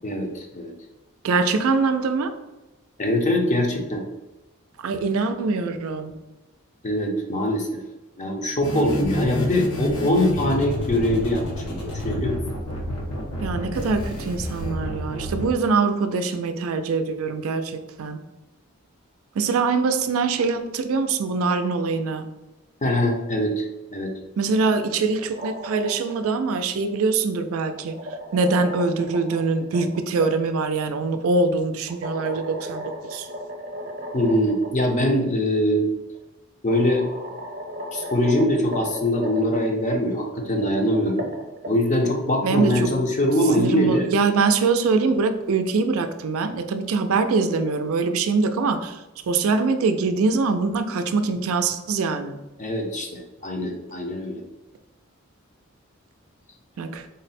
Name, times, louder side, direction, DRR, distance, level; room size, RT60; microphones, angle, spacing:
voice 1, 0.0-0.7 3.0-4.0 6.8-7.7 8.2-11.4 11.7-12.4 22.8-23.7 23.9-24.1 34.1-35.9 36.6-37.1 37.9-41.3 41.7-44.1 52.6-54.4, left 1 dB, 35° left, 1 dB, 0.5 m, -22 dB
voice 2, 1.2-2.3 4.8-6.1 13.4-18.2 19.4-22.3 24.4-28.0 28.3-33.3 42.4-42.9 43.6-49.0 49.3-52.4 56.8-57.0, right 4 dB, 75° right, 8 dB, 0.4 m, -23 dB
sound 1, 8.6-15.4, left 1 dB, 90° left, 0.9 m, -29 dB
sound 2, 25.2-26.3 27.4-30.3 31.9-34.7 35.0-35.1 36.1-36.2 36.7-39.6 40.4-42.1, equal, 40° right, 0.7 m, -35 dB
3.8 x 2.1 x 4.1 m, 1.0 s
head